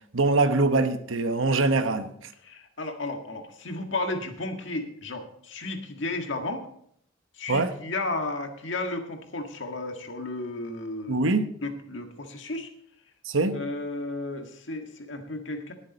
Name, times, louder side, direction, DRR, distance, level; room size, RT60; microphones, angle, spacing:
voice 1, 0.1-2.1 7.5-7.7 11.1-11.4 13.3-13.6, right 3 dB, 80° right, 1.0 m, -23 dB
voice 2, 2.4-6.6 7.4-11.3 11.6-12.7 13.5-15.7, left 2 dB, 70° left, 1.8 m, -33 dB
19.5 x 7.5 x 4.1 m
head